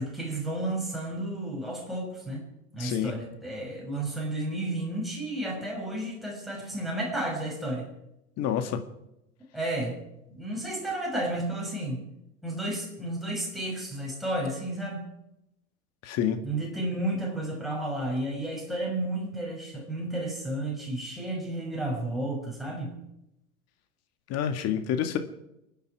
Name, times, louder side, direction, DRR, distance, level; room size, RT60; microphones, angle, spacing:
voice 1, 0.0-2.4 2.7-7.9 9.5-10.0 10.3-12.0 12.4-15.1 16.4-22.9, right 1 dB, ahead, -2 dB, 6.2 m, -32 dB
voice 2, 2.8-3.2 8.4-8.8 16.0-16.4 24.3-25.2, left 9 dB, 35° left, 8 dB, 2.0 m, -28 dB
30.0 x 10.0 x 4.8 m, 0.86 s
figure-of-eight pair, 85°, 43 cm